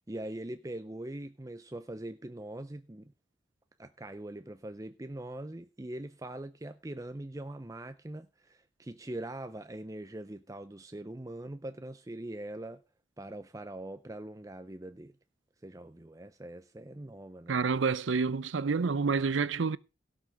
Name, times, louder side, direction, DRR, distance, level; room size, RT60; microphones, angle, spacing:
voice 1, 0.1-3.1 3.8-12.8 13.2-15.1 15.6-17.7, right 1 dB, 20° right, 0.5 m, -42 dB
voice 2, 17.5-19.8, right 4 dB, 85° right, 0.6 m, -28 dB
17.0 x 6.1 x 5.3 m
head